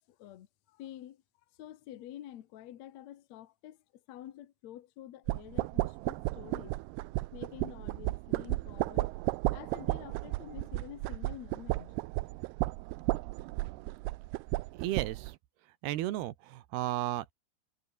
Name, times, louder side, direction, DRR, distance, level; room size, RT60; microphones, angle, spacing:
voice 1, 0.1-1.2 1.6-3.8 4.1-6.8 7.3-9.1 9.5-12.0, left 12 dB, 90° left, 1.5 m, -48 dB
sound 1, 5.3-15.3, right 21 dB, 85° right, 2.3 m, -34 dB
voice 2, 14.7-15.4 15.8-17.3, right 14 dB, 70° right, 3.0 m, -34 dB
omnidirectional pair, 5.3 m